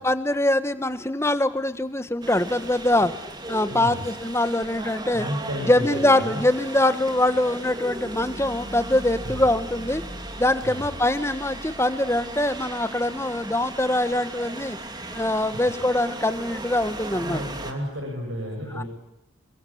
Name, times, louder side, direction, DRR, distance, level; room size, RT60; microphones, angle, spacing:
voice 1, 0.0-3.1 3.5-5.2 5.7-10.0 10.4-14.8 15.1-17.4 18.7-18.8, left 1 dB, 15° left, 11 dB, 1.4 m, -23 dB
sound 1, 2.2-17.7, right 2 dB, 20° right, 2.7 m, -37 dB
voice 2, 3.7-4.1 5.1-6.4 9.2-9.4 10.6-10.9 15.5-15.6 17.1-18.9, equal, 80° right, 1 dB, 7.5 m, -32 dB
28.5 x 22.5 x 8.7 m, 0.79 s
head